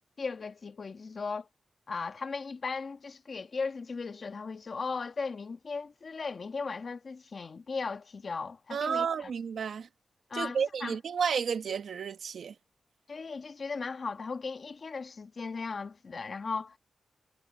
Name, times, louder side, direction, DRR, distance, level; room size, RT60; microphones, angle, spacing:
voice 1, 0.2-1.5 1.9-9.3 10.3-11.0 13.1-16.8, left 4 dB, 40° left, 1.3 m, -37 dB
voice 2, 8.7-9.9 10.3-12.5, right 6 dB, 70° right, 1.3 m, -31 dB
wide cardioid pair, 155°, 0 cm